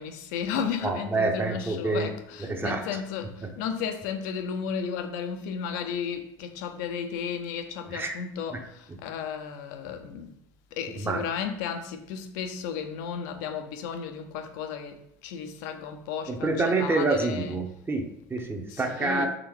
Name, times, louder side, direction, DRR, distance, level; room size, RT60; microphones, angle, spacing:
voice 1, 0.0-10.3 10.7-17.6 18.7-19.3, left 7 dB, 60° left, 0.5 m, -34 dB
voice 2, 0.8-2.1 2.4-2.8 7.9-8.1 8.5-8.6 11.0-11.2 16.3-19.3, right 3 dB, 20° right, 0.8 m, -27 dB
5.0 x 3.4 x 3.1 m
figure-of-eight pair, 65°, 11 cm